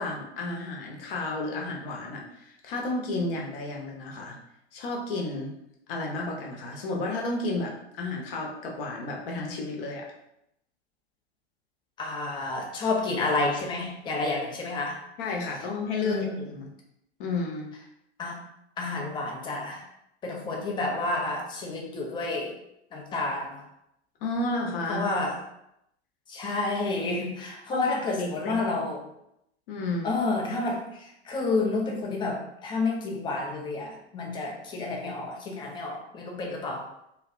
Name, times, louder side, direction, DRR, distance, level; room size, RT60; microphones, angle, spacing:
voice 1, 0.0-4.4 4.7-5.5 5.9-10.1 15.2-16.7 17.2-17.7 24.2-25.1 27.7-27.8 28.2-28.6 29.7-30.1, left 2 dB, 55° left, -1 dB, 0.7 m, -32 dB
voice 2, 12.0-15.0 16.0-16.5 18.2-18.4 18.8-19.9 20.2-22.6 22.9-23.7 24.9-25.4 26.3-29.0 30.0-36.9, left 3 dB, 15° left, 0 dB, 0.3 m, -30 dB
2.6 x 2.1 x 2.4 m, 0.81 s
figure-of-eight pair, 90°, 34 cm